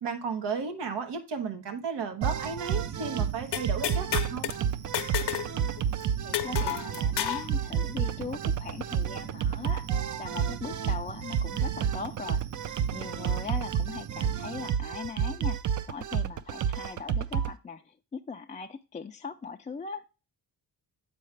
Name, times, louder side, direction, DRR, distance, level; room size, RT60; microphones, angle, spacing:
voice 1, 0.0-4.5, right 5 dB, 90° right, 1.3 m, -34 dB
sound 1, 2.2-17.5, right 8 dB, 45° right, 0.5 m, -30 dB
sound 2, 3.5-4.6 4.9-5.5 5.8-5.9 6.3-7.5, left 11 dB, 75° left, 0.8 m, -31 dB
voice 2, 6.2-9.9 10.2-12.4 12.9-15.6 15.9-20.1, left 5 dB, 20° left, 0.3 m, -40 dB
8.3 x 4.7 x 3.2 m
cardioid pair, 110°, 41 cm